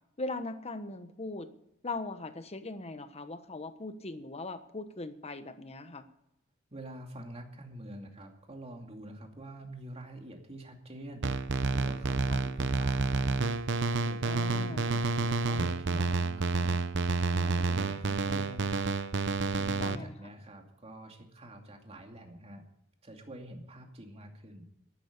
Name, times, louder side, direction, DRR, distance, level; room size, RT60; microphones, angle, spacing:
voice 1, 0.2-1.5 1.8-6.0 12.3-12.4 14.2-14.9 19.8-20.1, left 2 dB, 30° left, 10 dB, 1.1 m, -40 dB
voice 2, 6.7-13.3 13.9-18.9 19.5-22.6 23.0-24.7, right 1 dB, 30° right, 3 dB, 2.5 m, -46 dB
sound 1, 11.2-20.0, right 3 dB, 60° right, 0.8 m, -29 dB
12.5 x 11.5 x 6.7 m, 0.83 s
head